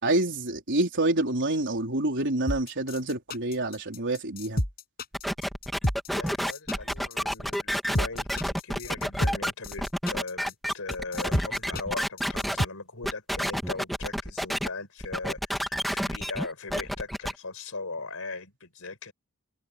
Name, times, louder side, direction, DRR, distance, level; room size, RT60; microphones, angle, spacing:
voice 1, 0.0-4.6, right 2 dB, 55° right, 4.5 m, -27 dB
sound 1, 2.5-12.7, left 1 dB, 45° left, 8.0 m, -30 dB
sound 2, 5.1-12.6 13.0-14.7 15.0-17.3, equal, ahead, 2.8 m, -30 dB
voice 2, 6.1-19.1, left 3 dB, 65° left, 5.4 m, -39 dB
head